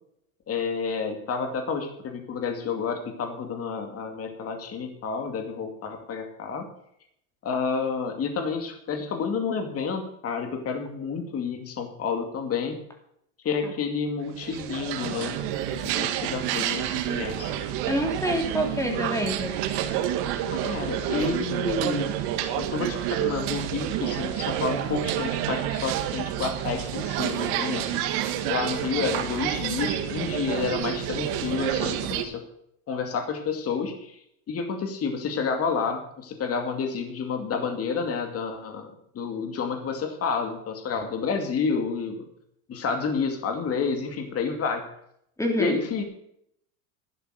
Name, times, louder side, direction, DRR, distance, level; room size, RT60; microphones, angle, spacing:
voice 1, 0.5-6.7 7.4-12.8 13.4-15.4 15.7-17.5 20.5-22.1 22.6-28.0 28.5-32.4 32.9-34.2 34.5-42.2 42.7-44.8 45.6-46.0, left 5 dB, 35° left, 5 dB, 2.4 m, -30 dB
sound 1, 14.3-32.2, right 11 dB, 65° right, 2.0 m, -29 dB
voice 2, 17.9-19.5 45.4-45.8, equal, 5° left, 3 dB, 3.0 m, -26 dB
12.0 x 10.5 x 5.0 m, 0.73 s
supercardioid pair, 135°, 43 cm